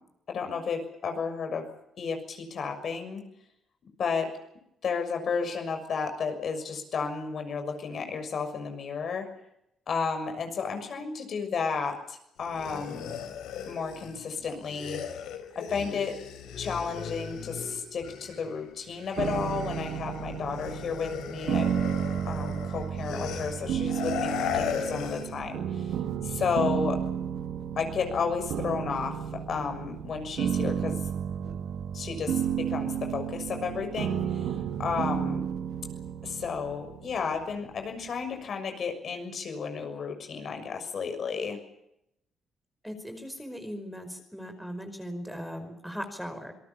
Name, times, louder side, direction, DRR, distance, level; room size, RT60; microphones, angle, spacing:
voice 1, 0.3-1.7 2.0-3.2 4.0-4.3 4.8-9.3 9.9-13.1 13.7-15.0 15.5-16.2 16.6-21.7 22.2-26.0 26.2-27.0 27.8-31.0 31.4-31.5 31.9-35.5 36.2-41.6, left 5 dB, 55° left, 6 dB, 6.6 m, -32 dB
sound 1, 12.4-18.6 18.9-25.4, left 8 dB, 90° left, 4.3 m, -37 dB
sound 2, 19.2-38.1, right 8 dB, 80° right, 1.8 m, -32 dB
voice 2, 42.8-46.5, equal, ahead, 7 dB, 5.0 m, -38 dB
27.5 x 19.0 x 7.3 m, 0.80 s
cardioid pair, 90°, 0 cm